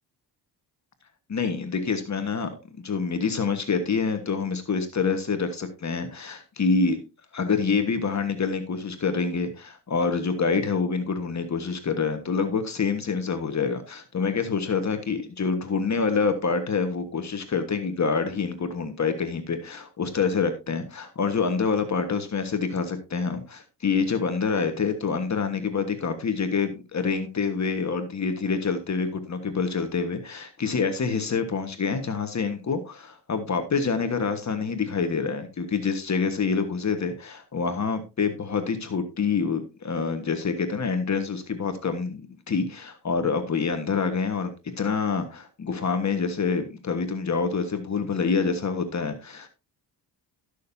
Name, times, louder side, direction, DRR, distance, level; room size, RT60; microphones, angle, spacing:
voice 1, 1.3-2.5 2.8-7.0 7.3-49.5, left 5 dB, 40° left, 7 dB, 1.5 m, -26 dB
19.0 x 6.6 x 2.7 m, 0.29 s
cardioid pair, 115°, 43 cm